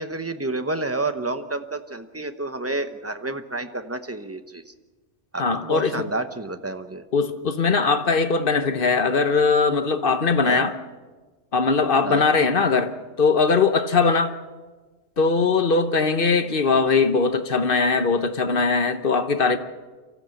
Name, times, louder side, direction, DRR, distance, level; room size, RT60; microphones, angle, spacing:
voice 1, 0.0-4.7 5.3-7.0 10.4-10.6 12.0-12.2, right 2 dB, 15° right, 0.9 m, -29 dB
voice 2, 5.4-6.1 7.1-10.7 11.5-14.3 15.2-19.6, left 4 dB, 50° left, 1.1 m, -20 dB
24.5 x 15.5 x 7.9 m
omnidirectional pair, 1.3 m